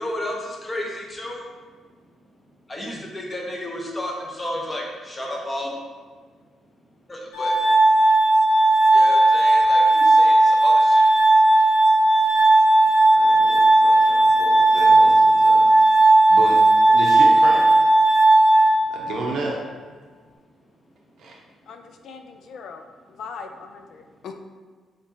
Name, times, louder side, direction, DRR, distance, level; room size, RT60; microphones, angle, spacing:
voice 1, 0.0-1.5 2.7-5.8 7.1-7.6 8.9-11.1, left 1 dB, 25° left, -1 dB, 0.8 m, -32 dB
Glass, 7.3-19.4, right 2 dB, 85° left, 0.7 m, -15 dB
voice 2, 12.8-15.7 16.0-16.6 16.9-17.6 18.9-19.6 21.2-21.4, right 2 dB, 70° right, -2 dB, 0.6 m, -32 dB
voice 3, 21.7-22.8 23.2-24.3, left 5 dB, 65° left, 6 dB, 0.3 m, -39 dB
4.1 x 2.9 x 2.8 m, 1.5 s
cardioid pair, 90°, 0 cm